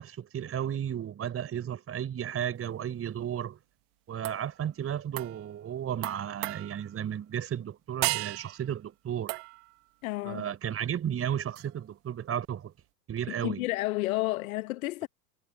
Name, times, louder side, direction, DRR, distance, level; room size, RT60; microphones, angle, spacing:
voice 1, 0.0-3.6 4.1-9.4 10.2-12.7 13.1-13.7, right 9 dB, 25° right, 5.5 m, -34 dB
sound 1, 4.2-4.5 5.2-5.5 6.0-7.0 8.0-8.7 9.3-9.7 11.6-11.7, right 30 dB, 50° right, 1.7 m, -34 dB
voice 2, 10.0-10.4 13.4-15.1, left 19 dB, 55° left, 1.4 m, -31 dB
figure-of-eight pair, 85°, 49 cm